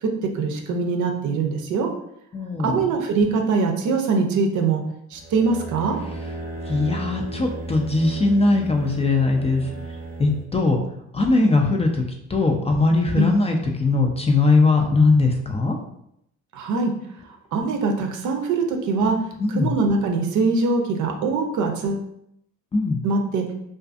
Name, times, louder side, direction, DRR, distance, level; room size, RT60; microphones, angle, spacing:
voice 1, 0.3-1.9 2.6-4.8 5.1-6.0 13.2-13.3 16.5-16.9 17.5-19.2 19.5-22.1 23.0-23.4, right 4 dB, 75° right, 3 dB, 0.5 m, -22 dB
voice 2, 2.3-2.8 6.7-9.7 10.2-10.8 11.1-12.0 12.3-15.8 19.4-19.7 22.7-23.0, left 3 dB, 20° left, 2 dB, 0.4 m, -20 dB
sound 1, 5.1-10.4, right 2 dB, 30° right, 0.5 m, -35 dB
2.4 x 2.4 x 2.4 m, 0.74 s
cardioid pair, 90°, 30 cm